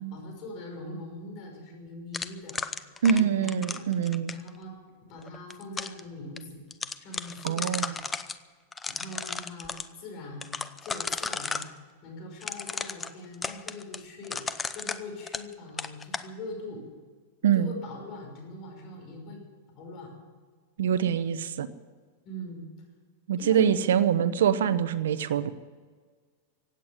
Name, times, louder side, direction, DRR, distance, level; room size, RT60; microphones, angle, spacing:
voice 1, 0.0-3.9 4.3-4.7 5.1-6.6 7.0-8.1 8.9-10.5 10.8-11.6 12.0-14.5 14.7-16.8 17.5-19.4 19.7-20.1 22.2-22.6 23.4-23.7, left 2 dB, 40° left, 2 dB, 5.7 m, -42 dB
sound 1, 2.1-4.5 5.3-6.0 6.4-6.5 6.7-8.4 8.7-9.9 10.4-11.7 12.4-15.5 15.8-16.3, left 4 dB, 15° left, 0.6 m, -34 dB
voice 2, 3.0-4.3 7.4-7.9 17.4-17.7 20.8-21.7 23.3-25.5, right 8 dB, 85° right, 13 dB, 0.9 m, -24 dB
16.5 x 9.2 x 9.7 m, 1.5 s
supercardioid pair, 145°, 0 cm